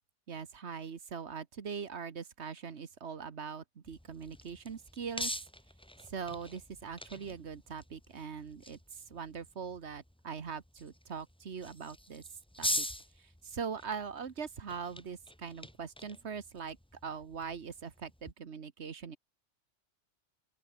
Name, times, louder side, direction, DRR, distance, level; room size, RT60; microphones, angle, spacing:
voice 1, 0.3-5.3 6.1-12.2 12.6-12.9 13.4-16.8 17.0-19.2, right 6 dB, 80° right, 1.6 m, -41 dB
sound 1, 3.9-18.3, equal, 5° left, 1.6 m, -44 dB
open air
omnidirectional pair, 1.1 m